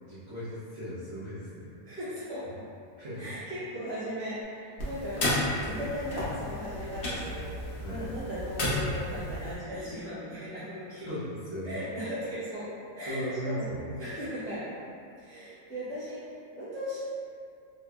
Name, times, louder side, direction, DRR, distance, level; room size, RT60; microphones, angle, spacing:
voice 1, 0.0-1.7 3.0-3.3 5.6-5.9 7.8-8.1 11.0-11.8 13.0-14.0, equal, 55° right, -12 dB, 0.7 m, -37 dB
voice 2, 1.8-2.6 3.2-5.4 5.7-11.1 11.6-13.7 14.0-14.7 15.2-16.2 16.6-17.2, equal, 5° left, -14 dB, 0.6 m, -37 dB
sound 1, 4.8-9.6, left 1 dB, 55° left, 0.6 m, -33 dB
3.1 x 2.9 x 2.3 m, 2.4 s
omnidirectional pair, 1.9 m